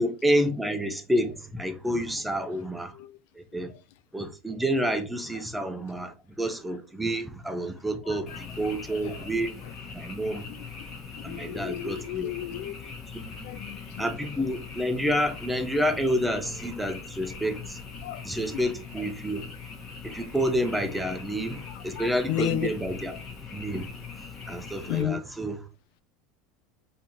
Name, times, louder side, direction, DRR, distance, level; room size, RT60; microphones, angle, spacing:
voice 1, 0.0-3.0 3.4-3.7 4.1-9.5 9.9-10.4 11.2-12.3 13.1-13.4 14.0-17.8 18.2-19.4 20.0-23.1 23.5-23.9 24.5-25.6, equal, 5° right, 0.4 m, -29 dB
voice 2, 2.6-3.2 3.7-3.8 4.2-4.3 8.0-8.4 9.0-9.3 9.6-9.7 10.3-10.6 11.1-12.9 13.2-14.1 18.0-18.2 18.5-18.6 21.7-22.7 24.8-25.2, left 12 dB, 75° left, 0.3 m, -34 dB
Frog, 8.3-25.0, left 5 dB, 30° left, 1.0 m, -41 dB
3.4 x 2.6 x 2.8 m
supercardioid pair, 150°, 0 cm